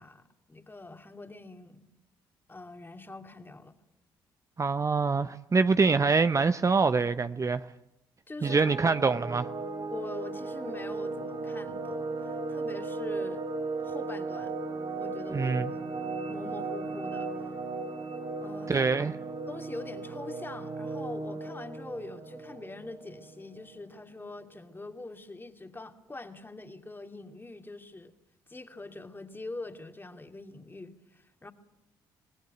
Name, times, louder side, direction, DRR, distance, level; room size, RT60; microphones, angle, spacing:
voice 1, 0.0-1.8 2.5-3.8 8.3-8.7 9.9-13.5 13.8-14.5 15.0-15.8 16.3-17.3 18.4-28.1 28.5-31.5, left 2 dB, 20° left, 2.4 m, -43 dB
voice 2, 4.6-7.6 8.4-9.5 15.3-15.7 18.7-19.1, right 4 dB, 30° right, 0.8 m, -25 dB
sound 1, 8.4-23.6, right 3 dB, 55° right, 3.9 m, -36 dB
25.5 x 18.5 x 9.3 m
hypercardioid pair, 55°, 10 cm